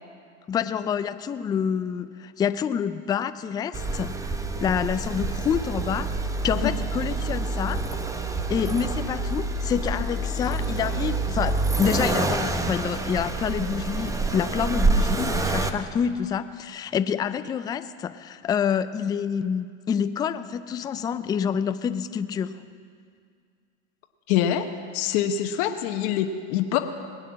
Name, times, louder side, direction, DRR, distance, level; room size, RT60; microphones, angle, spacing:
voice 1, 0.5-7.9 8.5-22.6, left 7 dB, 10° left, 11 dB, 0.3 m, -27 dB
Accelerating revving vroom, 3.7-15.7, right 3 dB, 10° right, 0.8 m, -27 dB
voice 2, 24.3-24.7 24.9-26.8, left 10 dB, 55° left, 6 dB, 1.0 m, -24 dB
20.0 x 8.9 x 7.5 m, 2.2 s
hypercardioid pair, 110°, 36 cm